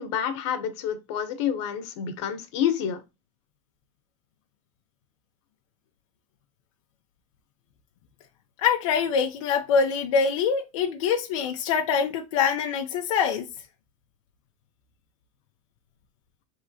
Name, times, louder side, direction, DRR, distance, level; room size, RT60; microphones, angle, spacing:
voice 1, 0.0-3.0, left 9 dB, 65° left, 1.3 m, -28 dB
voice 2, 8.6-13.5, left 6 dB, 85° left, 0.8 m, -24 dB
4.9 x 3.6 x 2.8 m
supercardioid pair, 170°, 16 cm